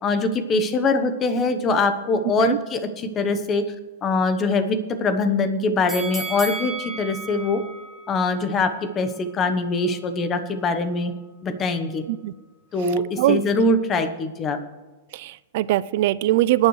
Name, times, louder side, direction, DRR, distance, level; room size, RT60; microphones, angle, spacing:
voice 1, 0.0-3.6 4.0-7.6 8.1-11.1 11.4-12.0 12.7-14.6, left 3 dB, 20° left, 9 dB, 1.0 m, -23 dB
sound 1, 5.9-9.0 9.4-9.5, right 3 dB, ahead, 1.4 m, -34 dB
voice 2, 15.1-16.7, right 15 dB, 50° right, 17 dB, 0.4 m, -21 dB
21.5 x 9.6 x 3.2 m, 1.2 s
supercardioid pair, 160°, 0 cm